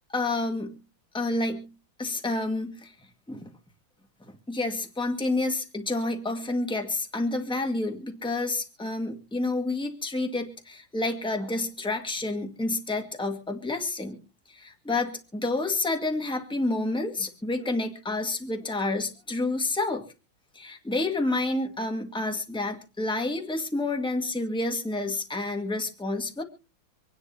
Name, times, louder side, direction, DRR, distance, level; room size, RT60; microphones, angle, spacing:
voice 1, 0.1-0.8 1.1-1.7 2.0-2.9 3.3-3.5 4.3-14.2 14.5-20.0 20.5-26.4, left 2 dB, 5° left, 4 dB, 1.5 m, -29 dB
26.5 x 9.7 x 2.8 m, 0.34 s
omnidirectional pair, 2.1 m